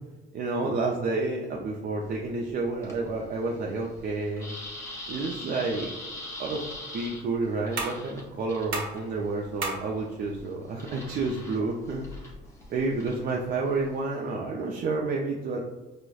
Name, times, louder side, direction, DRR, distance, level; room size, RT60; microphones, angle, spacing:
voice 1, 0.3-4.6 5.1-5.9 6.4-6.6 6.9-12.0 12.7-15.6, right 3 dB, 45° right, -1 dB, 0.4 m, -30 dB
sound 1, 2.0-14.0, left 1 dB, 15° left, 0.6 m, -44 dB
sound 2, 7.8-13.2, right 3 dB, 65° right, 0.9 m, -40 dB
4.7 x 2.1 x 2.3 m, 1.2 s
cardioid pair, 140°, 21 cm